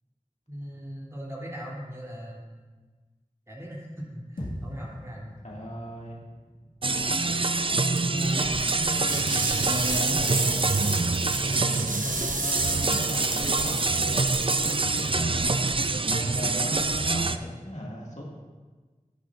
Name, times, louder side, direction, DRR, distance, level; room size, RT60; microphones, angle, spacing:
voice 1, 0.5-2.7 3.5-5.3 9.8-10.2 11.6-12.0 15.8-16.2, equal, 20° right, -5 dB, 3.2 m, -40 dB
sound 1, 4.4-8.7, equal, 80° left, 1.9 m, -43 dB
voice 2, 5.4-6.2 8.1-8.7 9.5-10.7 11.9-14.3 15.0-15.6 16.1-18.2, equal, 60° left, -4 dB, 2.2 m, -36 dB
sound 2, 6.8-17.4, right 3 dB, 40° right, 0.4 m, -26 dB
sound 3, 8.0-15.2, right 2 dB, 75° right, 0.9 m, -33 dB
13.0 x 11.0 x 2.5 m, 1.3 s
wide cardioid pair, 40°, 14 cm